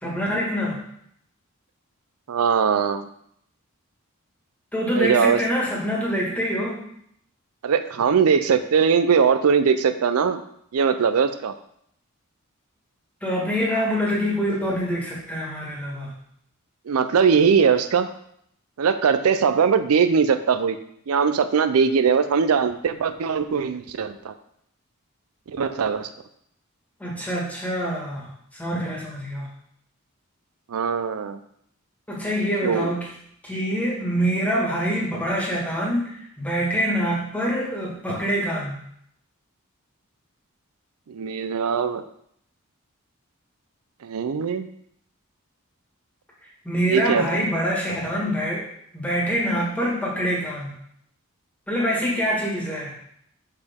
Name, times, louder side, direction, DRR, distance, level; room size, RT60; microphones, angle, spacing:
voice 1, 0.0-0.8 4.7-6.8 13.2-16.1 27.0-29.5 32.1-33.1 33.4-38.8 46.6-48.7 48.9-50.7 51.7-53.0, equal, 5° left, -4 dB, 1.5 m, -25 dB
voice 2, 2.3-3.1 5.0-5.4 7.6-10.4 10.7-11.5 16.9-18.1 18.8-20.8 21.1-24.3 25.5-26.1 30.7-31.4 32.6-32.9 41.1-42.1 44.0-44.7 46.9-47.4, right 6 dB, 85° right, 10 dB, 0.4 m, -21 dB
6.5 x 4.9 x 3.5 m, 0.70 s
head